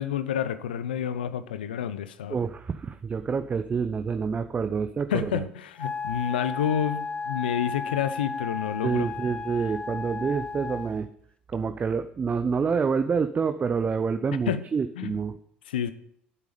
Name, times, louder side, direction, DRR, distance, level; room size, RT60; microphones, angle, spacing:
voice 1, 0.0-2.4 5.1-9.1 14.5-14.6 15.0-15.2 15.7-15.9, left 9 dB, 80° left, 0.7 m, -29 dB
voice 2, 2.3-5.5 8.8-11.1 11.5-15.4, right 5 dB, 30° right, 0.6 m, -27 dB
Wind instrument woodwind instrument, 5.8-11.0, left 4 dB, 25° left, 0.7 m, -34 dB
10.0 x 8.3 x 5.0 m
figure-of-eight pair, 60°, 5 cm